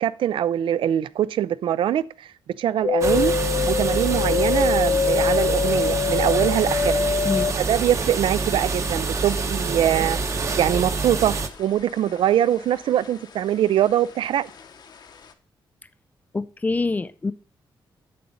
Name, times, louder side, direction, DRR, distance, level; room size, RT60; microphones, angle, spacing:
voice 1, 0.0-2.0 2.6-3.3 3.7-7.0 7.6-10.2 10.6-14.5, right 11 dB, 85° right, 0.4 m, -22 dB
sound 1, 2.8-12.2 12.5-13.4 13.7-14.7 15.0-15.1, left 6 dB, 55° left, 0.8 m, -25 dB
sound 2, 3.0-11.5, right 3 dB, 35° right, 0.8 m, -26 dB
voice 2, 16.3-17.3, left 3 dB, 20° left, 0.4 m, -25 dB
7.7 x 7.0 x 5.1 m
wide cardioid pair, 140°, 8 cm